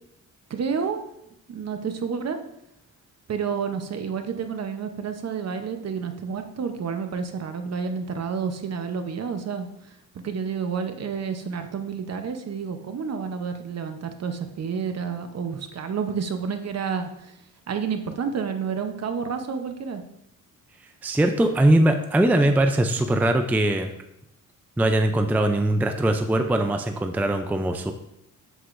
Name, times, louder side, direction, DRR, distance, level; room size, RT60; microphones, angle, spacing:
voice 1, 0.5-1.0 1.5-2.4 3.3-9.7 10.2-17.3 17.7-20.0, right 6 dB, 50° right, 7 dB, 0.8 m, -30 dB
voice 2, 21.0-23.9 24.8-27.9, right 1 dB, 5° right, 6 dB, 0.4 m, -21 dB
8.0 x 7.8 x 2.6 m, 0.80 s
cardioid pair, 130°, 34 cm